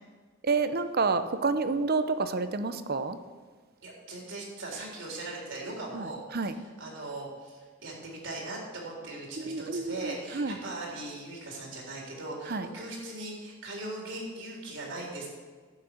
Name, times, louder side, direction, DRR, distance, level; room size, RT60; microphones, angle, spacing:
voice 1, 0.4-3.2 5.9-6.1 6.3-6.5 9.4-10.6 12.5-12.7, right 4 dB, 50° right, 11 dB, 0.7 m, -29 dB
voice 2, 3.8-15.3, right 2 dB, 65° right, -2 dB, 3.8 m, -39 dB
11.5 x 8.7 x 6.5 m, 1.5 s
head